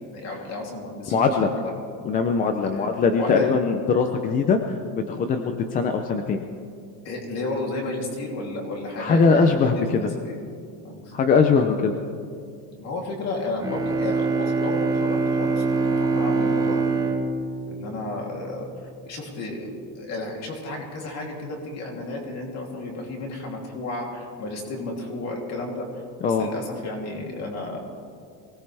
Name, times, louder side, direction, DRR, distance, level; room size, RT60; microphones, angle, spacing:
voice 1, 0.1-1.7 2.7-2.8 3.2-3.5 7.0-10.4 10.8-11.1 12.8-16.8 17.6-18.7 19.0-27.8, left 2 dB, 40° left, 0 dB, 2.9 m, -32 dB
voice 2, 1.1-1.5 2.1-4.6 4.9-6.4 9.0-10.1 11.1-11.9 26.2-26.5, left 5 dB, 20° left, 6 dB, 0.4 m, -21 dB
Bowed string instrument, 13.6-18.5, right 4 dB, 10° right, 0.8 m, -24 dB
23.5 x 18.0 x 3.4 m, 2.3 s
cardioid pair, 180°, 41 cm